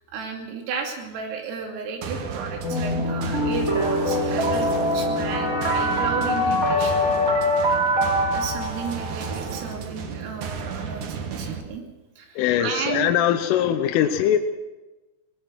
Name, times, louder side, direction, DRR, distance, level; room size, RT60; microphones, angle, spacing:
voice 1, 0.1-7.1 8.3-11.8 12.2-13.2, right 6 dB, 90° right, 2 dB, 5.3 m, -33 dB
sound 1, 2.0-11.6, right 6 dB, 65° right, 2.1 m, -33 dB
sound 2, 2.6-9.7, left 1 dB, 25° right, 2.4 m, -23 dB
voice 2, 12.4-14.4, left 10 dB, 80° left, 6 dB, 3.4 m, -21 dB
22.0 x 19.0 x 6.3 m, 1.1 s
omnidirectional pair, 5.8 m